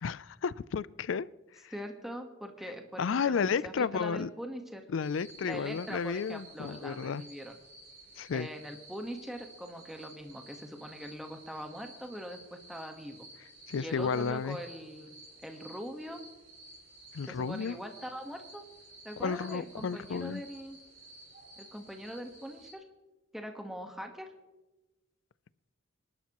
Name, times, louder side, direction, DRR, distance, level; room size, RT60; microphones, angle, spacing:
voice 1, 0.0-1.3 1.5-1.7 3.0-4.3 4.9-7.2 8.2-8.5 13.7-14.6 17.1-17.8 19.2-20.4, left 6 dB, 85° left, 0.4 m, -32 dB
voice 2, 1.7-4.8 5.4-7.5 8.3-13.2 13.8-15.1 15.4-16.2 17.3-18.7 19.0-20.8 21.6-22.8 23.3-24.3, equal, ahead, 1.3 m, -42 dB
sound 1, 5.0-22.7, right 2 dB, 45° right, 5.9 m, -53 dB
26.0 x 12.0 x 3.0 m
head